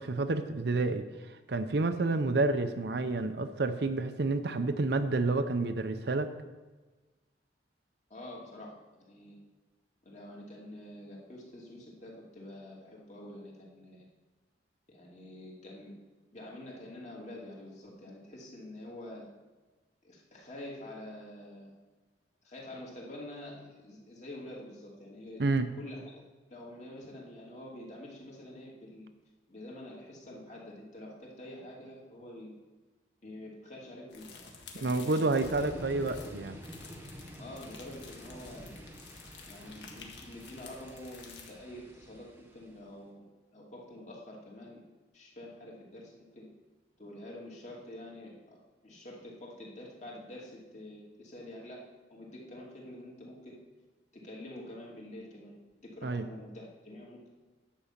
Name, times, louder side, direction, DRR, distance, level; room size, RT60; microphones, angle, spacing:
voice 1, 0.0-6.3 25.4-25.7 34.8-36.6 56.0-56.2, right 3 dB, 60° right, 9 dB, 0.7 m, -29 dB
voice 2, 8.1-9.4 10.0-14.1 14.9-15.9 16.3-19.3 20.0-21.7 22.4-25.4 25.8-26.2 26.5-29.1 29.5-32.5 33.2-35.4 37.4-38.7 39.4-44.8 45.1-46.5 47.0-48.6 48.8-53.6 54.1-57.3, left 1 dB, 40° left, -3 dB, 2.5 m, -47 dB
sound 1, 34.1-41.5, left 5 dB, 75° left, 1.7 m, -52 dB
sound 2, 35.4-42.9, equal, 10° right, 1.1 m, -48 dB
10.5 x 5.5 x 7.4 m, 1.2 s
head